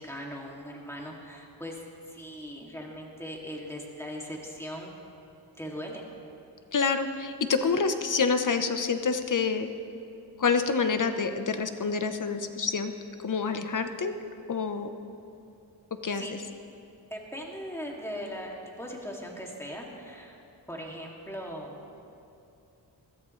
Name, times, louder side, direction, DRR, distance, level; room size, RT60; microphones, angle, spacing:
voice 1, 0.0-4.9 5.6-6.0 16.1-16.3 17.1-20.4 20.7-21.9, equal, 5° left, -1 dB, 2.5 m, -39 dB
voice 2, 6.7-9.7 10.4-12.9 13.2-14.2 14.5-14.9 16.0-16.2, left 5 dB, 45° left, 8 dB, 1.0 m, -27 dB
21.5 x 14.0 x 3.3 m, 2.7 s
cardioid pair, 75°, 42 cm